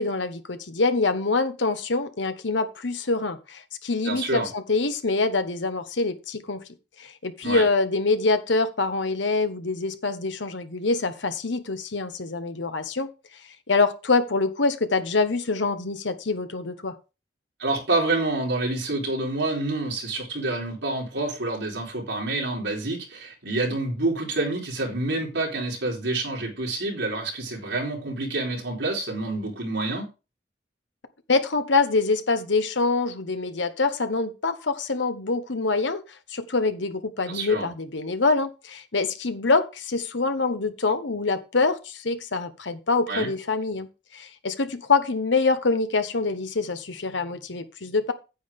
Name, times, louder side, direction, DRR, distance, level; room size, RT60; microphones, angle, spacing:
voice 1, 0.0-6.6 7.0-13.1 13.7-16.9 31.3-36.0 36.3-48.1, left 3 dB, 80° left, 10 dB, 1.2 m, -25 dB
voice 2, 4.0-4.5 7.4-7.6 17.6-30.1 37.3-37.7 43.1-43.3, right 2 dB, 75° right, -1 dB, 4.0 m, -28 dB
9.3 x 8.6 x 3.7 m, 0.30 s
head